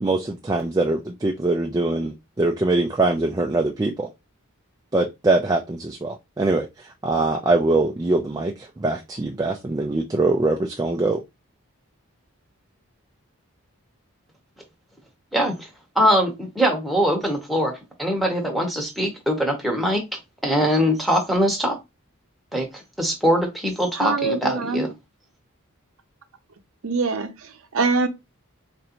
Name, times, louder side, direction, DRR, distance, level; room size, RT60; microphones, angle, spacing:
voice 1, 0.0-4.1 4.9-6.7 7.0-11.2, right 2 dB, 15° right, 0.3 m, -23 dB
voice 2, 15.3-15.7 16.0-17.7 18.0-20.0 20.4-21.8 22.5-22.7 23.0-24.9, equal, ahead, 0.8 m, -22 dB
voice 3, 24.0-24.9 26.8-27.3 27.7-28.1, right 4 dB, 65° right, 0.6 m, -23 dB
4.3 x 2.5 x 2.9 m
head